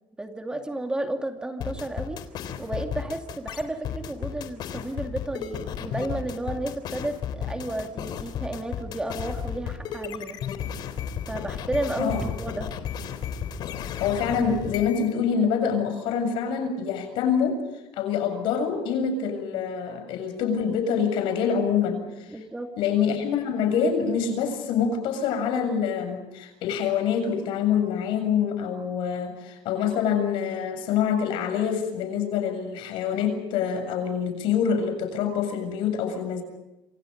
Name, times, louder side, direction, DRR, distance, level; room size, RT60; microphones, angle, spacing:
voice 1, 0.2-2.2 2.6-10.4 11.3-12.8 22.3-22.7, right 1 dB, 10° right, 4 dB, 2.5 m, -32 dB
sound 1, 1.6-15.1, left 8 dB, 60° left, 3.4 m, -33 dB
voice 2, 14.0-17.6 17.9-22.4 22.8-36.4, left 7 dB, 80° left, 7 dB, 7.3 m, -26 dB
28.0 x 27.0 x 5.3 m, 0.94 s
cardioid pair, 145°, 8 cm